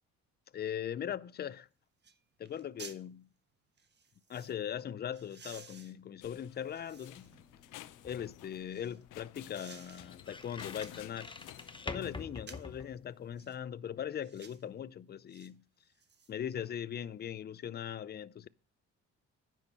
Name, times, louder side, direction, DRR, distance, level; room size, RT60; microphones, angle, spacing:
voice 1, 0.5-1.7 2.4-3.3 4.3-7.3 8.0-11.3 11.8-15.6 16.3-18.5, left 9 dB, 30° left, 0.5 m, -40 dB
sound 1, 1.5-1.6 2.0-2.2 2.4-3.0 3.8-4.6 5.1-7.4 7.9-9.0 9.5-10.0 10.4-11.7 12.4-12.8 13.4-13.6 14.2-14.6 15.3-15.5 15.9-16.7 17.0-17.1, right 5 dB, 35° right, 1.3 m, -55 dB
sound 2, 6.2-12.3, left 14 dB, 70° left, 0.7 m, -53 dB
sound 3, 7.3-13.5, left 3 dB, 15° left, 0.9 m, -48 dB
9.7 x 6.3 x 5.5 m
supercardioid pair, 80°, 32 cm